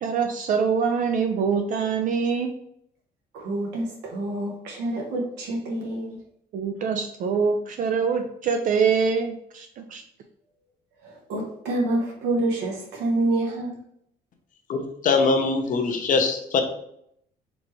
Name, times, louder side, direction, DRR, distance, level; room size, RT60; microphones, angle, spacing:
voice 1, 0.0-2.5 6.5-10.0, right 5 dB, 50° right, 4 dB, 0.4 m, -24 dB
voice 2, 3.3-6.2 11.0-13.8, right 2 dB, 85° right, -1 dB, 1.0 m, -27 dB
voice 3, 14.7-16.6, left 4 dB, 50° left, 6 dB, 0.8 m, -22 dB
4.2 x 3.2 x 3.0 m, 0.72 s
cardioid pair, 110°, 17 cm